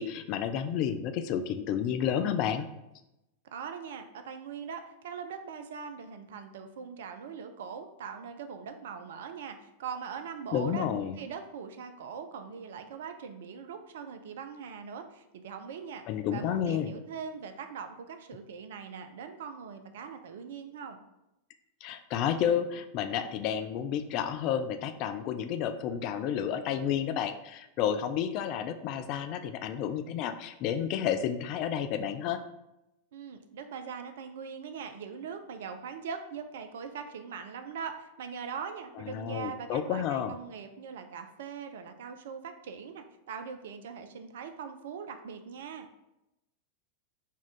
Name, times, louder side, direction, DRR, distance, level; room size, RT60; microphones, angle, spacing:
voice 1, 0.0-2.7 10.5-11.1 16.1-16.9 21.8-32.4 39.0-40.3, left 9 dB, 40° left, 9 dB, 0.3 m, -31 dB
voice 2, 3.4-10.9 11.2-16.1 16.3-21.0 33.1-45.9, right 6 dB, 60° right, 8 dB, 0.4 m, -41 dB
3.6 x 2.3 x 4.1 m, 0.90 s
figure-of-eight pair, 90°, 0 cm